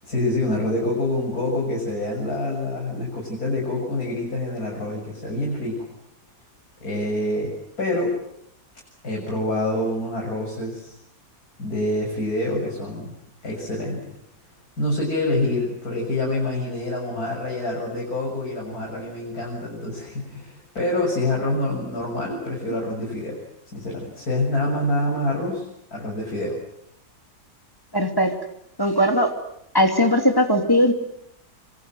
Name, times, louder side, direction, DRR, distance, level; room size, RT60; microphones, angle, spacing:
voice 1, 0.0-5.9 6.8-8.1 9.0-10.9 11.6-13.1 13.4-14.2 14.8-23.4 23.7-25.7 25.9-26.6, left 1 dB, 65° left, -3 dB, 7.7 m, -26 dB
voice 2, 27.9-28.3 28.8-29.3 29.7-30.9, equal, 15° left, 4 dB, 2.8 m, -19 dB
27.5 x 25.0 x 7.9 m, 0.75 s
omnidirectional pair, 1.7 m